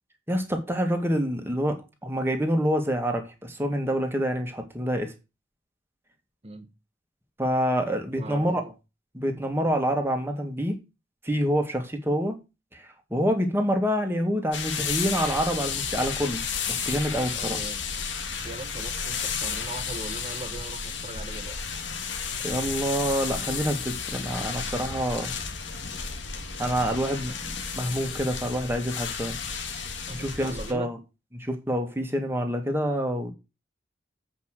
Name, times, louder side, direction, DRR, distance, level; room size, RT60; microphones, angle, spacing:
voice 1, 0.3-5.1 7.4-8.6 9.1-10.8 11.2-12.4 12.7-17.6 22.4-25.3 26.6-29.4 29.8-31.0 31.3-33.3, equal, 15° right, 2.0 m, -27 dB
voice 2, 8.2-8.7 17.3-17.8 18.4-21.6 30.1-30.9, right 2 dB, 30° right, 1.1 m, -40 dB
sound 1, 14.5-30.7, left 6 dB, 70° left, 1.6 m, -32 dB
8.3 x 5.4 x 6.6 m
head